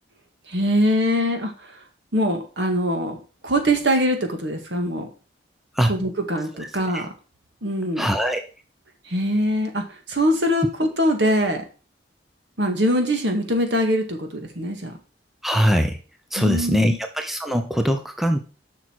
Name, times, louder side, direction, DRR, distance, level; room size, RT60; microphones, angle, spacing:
voice 1, 0.5-1.5 2.1-5.1 5.9-7.1 7.6-8.1 9.1-11.6 12.6-14.9 16.4-17.0, equal, 70° right, 5 dB, 1.9 m, -23 dB
voice 2, 8.0-8.4 15.4-16.0 16.3-18.4, equal, ahead, 6 dB, 0.7 m, -21 dB
7.3 x 5.9 x 6.2 m, 0.36 s
head